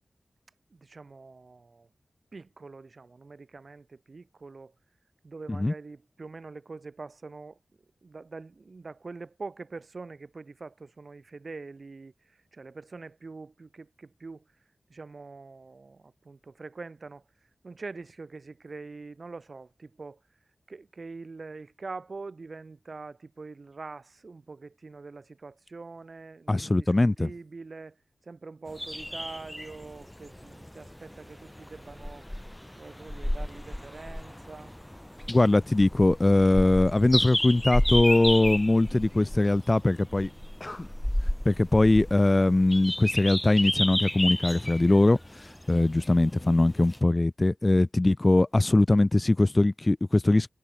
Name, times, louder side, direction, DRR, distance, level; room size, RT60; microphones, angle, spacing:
voice 1, 0.7-1.9 2.3-4.7 5.2-7.6 8.0-14.5 14.9-17.2 17.6-20.2 20.7-32.3 32.8-34.8, right 3 dB, 55° right, 7.0 m, -44 dB
voice 2, 26.5-27.3 35.3-40.3 40.6-40.9 41.5-50.5, left 2 dB, 30° left, 0.6 m, -22 dB
sound 1, 28.7-47.0, left 1 dB, 10° left, 5.7 m, -32 dB
wide cardioid pair, 65°, 0 cm